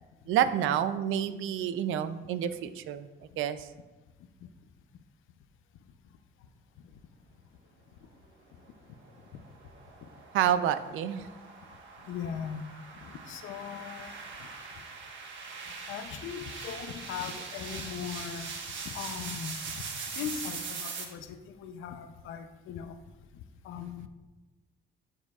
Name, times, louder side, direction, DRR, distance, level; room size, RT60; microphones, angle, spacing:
voice 1, 0.3-3.1 3.4-3.7 10.3-11.3, right 10 dB, 85° right, 12 dB, 0.5 m, -28 dB
sound 1, 9.0-21.0, right 4 dB, 70° right, 1.3 m, -42 dB
voice 2, 12.0-12.7 13.0-14.1 14.4-14.5 14.7-14.8 15.9-18.6 18.8-19.8 20.1-23.0 23.6-24.1, left 8 dB, 85° left, 8 dB, 0.6 m, -39 dB
12.0 x 6.7 x 2.4 m, 1.2 s
cardioid pair, 90°, 20 cm